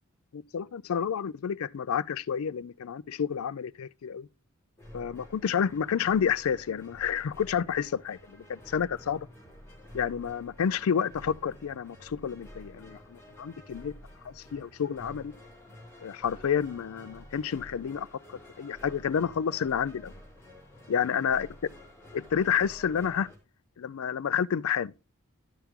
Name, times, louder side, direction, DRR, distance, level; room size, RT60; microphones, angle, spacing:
voice 1, 0.3-4.3 4.9-9.3 9.9-13.9 14.2-15.3 16.0-18.1 18.6-20.1 20.9-21.5 22.1-23.3 23.8-24.9, left 7 dB, 75° left, 0.4 m, -29 dB
sound 1, 4.8-23.4, equal, 10° left, 3.0 m, -50 dB
11.5 x 5.9 x 3.6 m
head